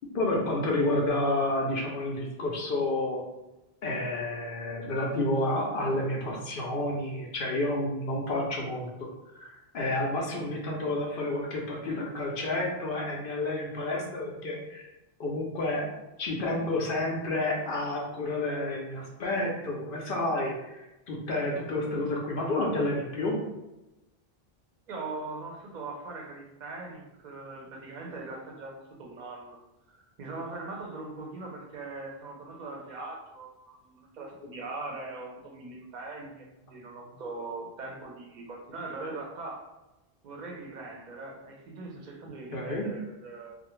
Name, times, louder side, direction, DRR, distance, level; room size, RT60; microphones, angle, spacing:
voice 1, 0.1-3.2 3.8-9.1 9.3-14.8 15.2-15.8 16.2-23.4 42.5-42.9, left 2 dB, 65° left, -1 dB, 0.7 m, -30 dB
voice 2, 24.9-29.6 29.9-39.6 40.2-43.6, right 3 dB, 50° right, 0 dB, 0.6 m, -41 dB
2.4 x 2.1 x 3.0 m, 0.98 s
omnidirectional pair, 1.1 m